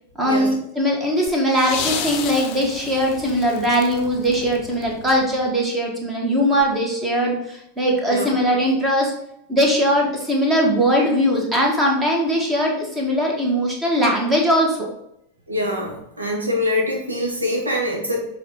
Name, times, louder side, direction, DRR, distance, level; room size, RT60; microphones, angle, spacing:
voice 1, 0.2-9.1 9.5-14.8, equal, 15° right, -1 dB, 1.9 m, -20 dB
sound 1, 1.3-5.5 6.6-6.7, left 7 dB, 40° left, 0.7 m, -32 dB
voice 2, 15.5-18.3, left 1 dB, 80° right, -2 dB, 1.9 m, -24 dB
7.1 x 3.6 x 4.3 m, 0.76 s
figure-of-eight pair, 90°, 0 cm